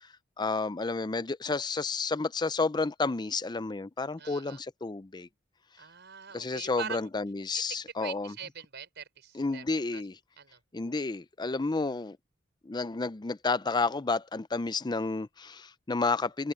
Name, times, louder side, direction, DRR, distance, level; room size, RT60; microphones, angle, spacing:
voice 1, 0.4-5.3 6.3-8.3 9.3-10.2 10.7-12.2 12.6-16.5, left 3 dB, 20° left, 0.5 m, -31 dB
voice 2, 4.2-4.6 5.8-7.1 7.5-9.6 9.9-10.0 10.4-10.6, right 7 dB, 60° right, 6.1 m, -43 dB
head